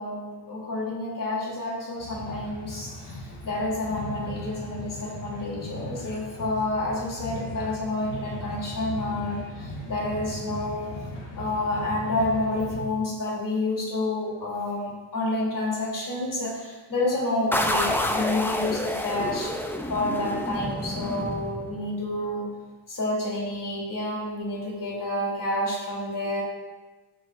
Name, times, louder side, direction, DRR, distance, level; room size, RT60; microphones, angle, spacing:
voice 1, 0.0-10.9 11.4-19.5 19.9-22.5 22.9-26.4, left 2 dB, 40° left, -3 dB, 3.0 m, -29 dB
sound 1, 2.0-12.8, equal, 80° left, 2.9 m, -38 dB
sound 2, 17.5-22.0, left 1 dB, 5° left, 0.4 m, -28 dB
14.0 x 7.6 x 2.5 m, 1.2 s
cardioid pair, 145°, 48 cm